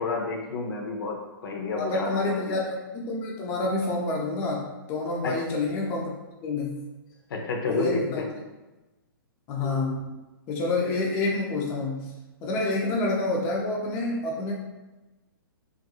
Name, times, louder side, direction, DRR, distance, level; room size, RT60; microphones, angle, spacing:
voice 1, 0.0-2.6 5.2-5.4 7.3-8.3, left 4 dB, 70° left, 1 dB, 0.6 m, -30 dB
voice 2, 1.8-6.1 6.4-6.9 7.7-8.2 9.5-10.1 10.5-12.1 12.4-14.5, left 2 dB, 20° left, -2 dB, 0.3 m, -28 dB
2.4 x 2.2 x 2.8 m, 1.1 s
hypercardioid pair, 140°, 12 cm